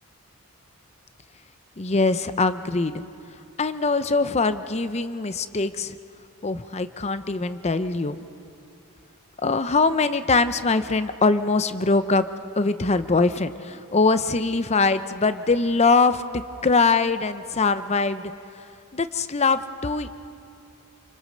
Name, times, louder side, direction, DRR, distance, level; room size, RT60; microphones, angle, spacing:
voice 1, 1.8-3.0 3.6-6.0 6.4-8.2 9.4-12.3 12.6-18.3 18.9-20.1, left 3 dB, 30° left, 12 dB, 0.6 m, -22 dB
27.0 x 24.5 x 6.6 m, 2.7 s
head